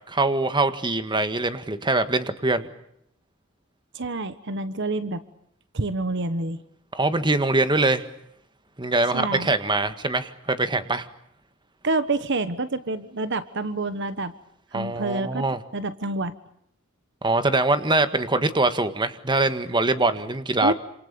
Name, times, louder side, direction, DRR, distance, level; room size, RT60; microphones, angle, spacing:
voice 1, 0.1-2.7 6.9-8.0 8.8-11.1 14.7-15.6 17.2-20.7, right 2 dB, 20° right, 10 dB, 1.7 m, -23 dB
voice 2, 3.9-5.2 5.7-6.6 9.1-9.5 11.8-14.3 14.7-15.5 15.7-16.3 20.6-20.7, right 2 dB, 60° right, 12 dB, 1.3 m, -27 dB
28.0 x 27.0 x 6.9 m, 0.74 s
head